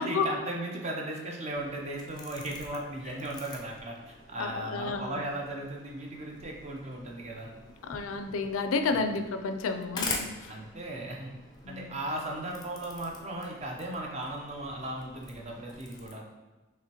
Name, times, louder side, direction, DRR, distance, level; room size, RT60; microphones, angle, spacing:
voice 1, 0.0-7.5 8.9-9.1 10.5-11.3 11.7-16.2, right 1 dB, 30° right, 0 dB, 0.6 m, -37 dB
sound 1, 1.5-16.1, left 3 dB, 20° left, 0.4 m, -44 dB
voice 2, 4.4-5.2 7.8-10.5 11.6-12.0, left 4 dB, 85° left, 7 dB, 0.4 m, -31 dB
4.8 x 3.0 x 2.9 m, 1.2 s
head